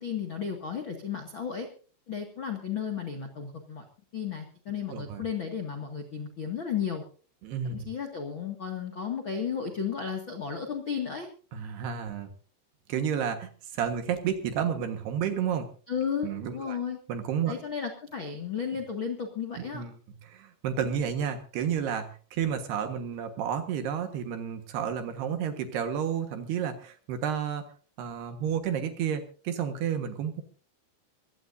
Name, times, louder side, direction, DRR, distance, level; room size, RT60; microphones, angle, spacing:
voice 1, 0.0-1.7 2.1-3.8 4.1-7.0 7.6-11.3 15.9-17.0 17.5-19.8, left 7 dB, 55° left, 3 dB, 1.3 m, -33 dB
voice 2, 4.9-5.2 7.4-7.9 11.5-12.3 12.9-15.7 16.2-16.8 17.1-17.5 19.6-19.9 20.2-27.7 28.0-30.4, right 8 dB, 65° right, 7 dB, 3.1 m, -31 dB
24.0 x 16.5 x 2.7 m, 0.39 s
omnidirectional pair, 5.6 m